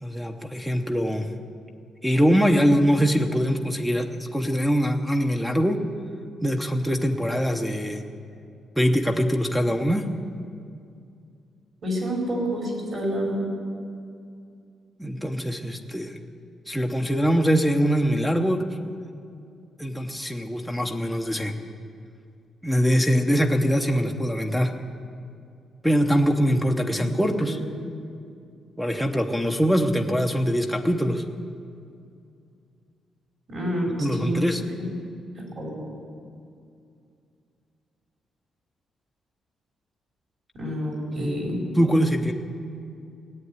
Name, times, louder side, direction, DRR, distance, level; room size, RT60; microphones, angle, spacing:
voice 1, 0.0-1.3 2.0-5.8 6.4-8.0 8.8-10.1 15.0-16.1 16.7-18.6 19.8-21.5 22.6-24.7 25.8-27.6 28.8-31.2 34.0-34.6 41.2-41.4 41.8-42.3, equal, ahead, 4 dB, 0.8 m, -23 dB
voice 2, 11.8-13.5 26.9-27.5 33.5-34.9 35.6-35.9 40.5-41.6, equal, 45° right, -2 dB, 4.7 m, -29 dB
17.5 x 8.4 x 9.4 m, 2.4 s
cardioid pair, 140°, 0 cm